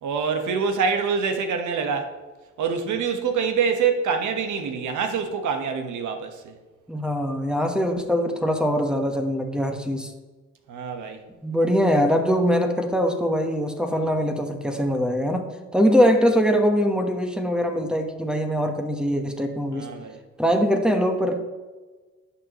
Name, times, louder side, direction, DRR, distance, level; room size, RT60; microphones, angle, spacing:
voice 1, 0.0-2.1 2.6-6.5 10.7-11.2 19.7-20.2, right 6 dB, 75° right, 5 dB, 1.3 m, -25 dB
voice 2, 6.9-10.1 11.4-19.9 20.4-21.4, equal, 5° right, 3 dB, 1.1 m, -22 dB
11.5 x 7.0 x 3.0 m, 1.3 s
cardioid pair, 90°, 30 cm